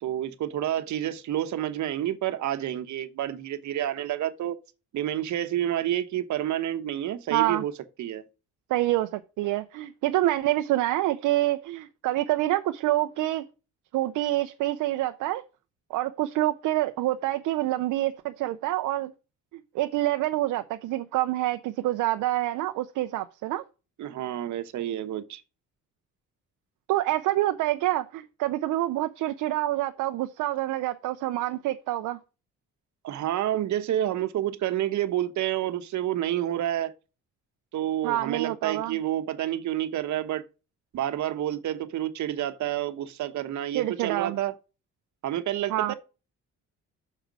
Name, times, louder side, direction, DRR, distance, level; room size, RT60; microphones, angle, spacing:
voice 1, 0.0-4.6 4.9-7.7 8.0-8.2 24.0-25.4 33.0-36.9 37.7-40.4 40.9-44.6 45.2-45.9, right 12 dB, 70° right, 1.0 m, -29 dB
voice 2, 7.3-7.6 8.7-13.4 13.9-15.4 15.9-19.1 19.5-23.6 26.9-32.2 38.0-39.0 43.7-44.4 45.7-45.9, right 15 dB, 85° right, 0.6 m, -27 dB
6.5 x 5.1 x 6.1 m
cardioid pair, 90°, 30 cm